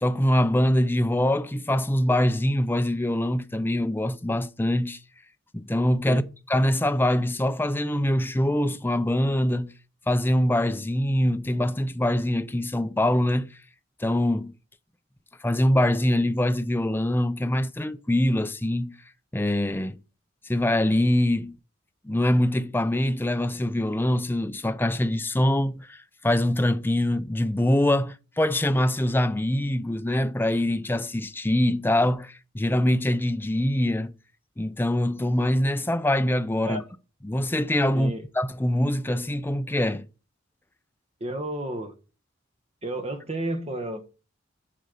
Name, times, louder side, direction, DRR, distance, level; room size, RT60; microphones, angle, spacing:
voice 1, 0.0-5.0 5.5-6.2 6.5-9.7 10.1-13.5 14.0-14.5 15.4-18.9 19.3-20.0 20.5-21.6 22.0-26.0 26.2-34.1 34.6-36.8 37.2-40.0, left 1 dB, 10° left, 0.5 m, -24 dB
voice 2, 41.2-41.9 42.8-44.0, right 1 dB, 35° right, 1.3 m, -31 dB
10.0 x 4.2 x 6.6 m
head